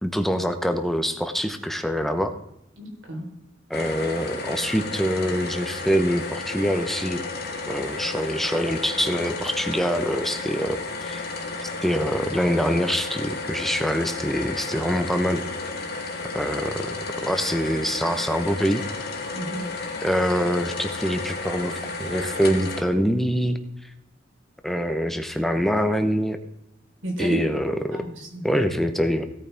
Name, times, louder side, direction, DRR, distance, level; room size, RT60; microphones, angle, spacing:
voice 1, 0.0-2.3 3.7-7.2 7.7-11.2 11.6-15.4 16.3-16.9 17.2-18.8 20.0-23.6 24.6-26.4 27.2-28.1 28.4-29.2, equal, ahead, 7 dB, 0.9 m, -25 dB
voice 2, 2.8-3.3 19.3-19.7 27.0-27.4 27.9-28.6, equal, 90° right, 0 dB, 4.0 m, -31 dB
sound 1, 3.7-22.8, left 3 dB, 55° left, 2.1 m, -33 dB
17.0 x 9.0 x 3.5 m, 0.84 s
head